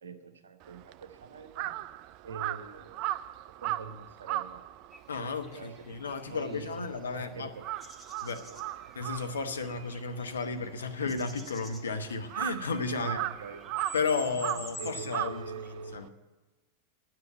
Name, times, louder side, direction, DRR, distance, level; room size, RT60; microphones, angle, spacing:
voice 1, 0.0-1.8 2.2-3.1 3.6-4.7 5.2-5.9 6.3-7.7 8.3-8.6 12.9-13.8 14.4-16.1, right 5 dB, 70° right, 8 dB, 0.9 m, -44 dB
Crow, 0.6-7.2 7.5-16.1, right 14 dB, 40° right, 0.3 m, -38 dB
sound 1, 4.9-15.7, equal, ahead, 1.2 m, -49 dB
voice 2, 5.1-7.5 8.2-8.5 9.0-13.2 13.9-15.4 15.9-16.1, left 4 dB, 70° left, 7 dB, 0.9 m, -33 dB
9.6 x 7.5 x 8.8 m, 1.2 s
figure-of-eight pair, 90°, 0 cm